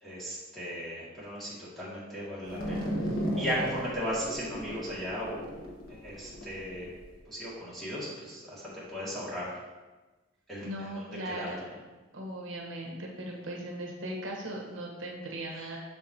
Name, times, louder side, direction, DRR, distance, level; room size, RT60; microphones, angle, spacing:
voice 1, 0.0-2.9 3.4-5.5 5.9-6.9 7.3-9.6 10.5-11.5, equal, ahead, -9 dB, 2.0 m, -36 dB
sound 1, 2.5-7.1, equal, 75° left, 1.3 m, -35 dB
voice 2, 10.6-11.6 12.1-15.8, right 1 dB, 70° right, -1 dB, 1.1 m, -38 dB
7.2 x 6.5 x 2.8 m, 1.2 s
head